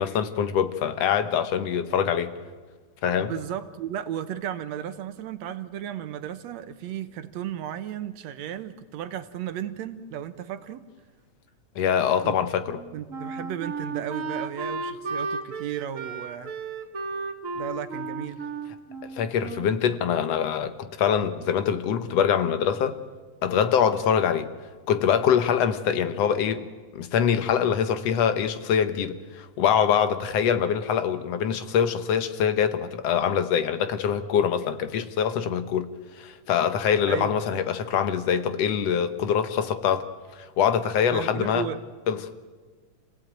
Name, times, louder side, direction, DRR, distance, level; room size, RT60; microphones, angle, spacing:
voice 1, 0.0-2.3 3.0-3.3 11.8-12.8 19.1-23.0 23.4-24.5 24.9-26.7 26.9-35.9 36.2-40.1 40.4-41.7 42.1-42.2, left 8 dB, 65° left, 1.9 m, -24 dB
voice 2, 3.2-10.8 12.2-12.4 12.9-16.5 17.6-18.4 37.0-37.3 41.1-41.8, right 10 dB, 70° right, 2.1 m, -34 dB
Wind instrument woodwind instrument, 12.7-19.9, right 4 dB, 40° right, 1.2 m, -34 dB
27.0 x 17.5 x 8.9 m
omnidirectional pair, 3.4 m